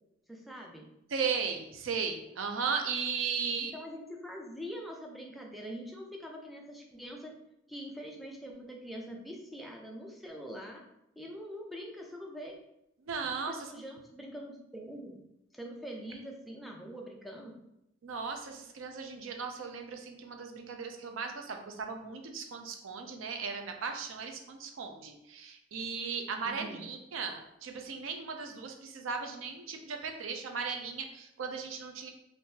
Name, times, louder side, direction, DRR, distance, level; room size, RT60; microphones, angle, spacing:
voice 1, 0.3-0.9 3.6-7.3 7.7-10.8 11.2-12.6 13.5-15.2 15.5-17.5 26.4-26.9, equal, ahead, 0 dB, 0.4 m, -44 dB
voice 2, 1.1-3.7 13.0-13.7 18.0-32.1, right 5 dB, 75° right, 4 dB, 0.5 m, -36 dB
3.6 x 2.6 x 2.7 m, 0.83 s
head